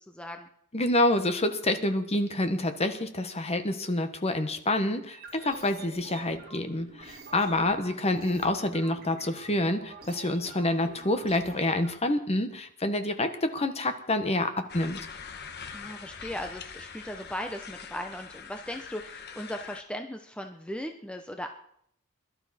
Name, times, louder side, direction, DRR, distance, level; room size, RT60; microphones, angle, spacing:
voice 1, 0.1-0.5 15.7-21.5, equal, 5° left, 5 dB, 0.7 m, -38 dB
voice 2, 0.7-15.0, left 1 dB, 30° left, 8 dB, 1.2 m, -27 dB
sound 1, 5.1-11.9, right 3 dB, 45° right, 3.5 m, -47 dB
sound 2, 14.7-19.8, left 6 dB, 50° left, 1.2 m, -43 dB
21.5 x 12.0 x 4.2 m, 0.69 s
head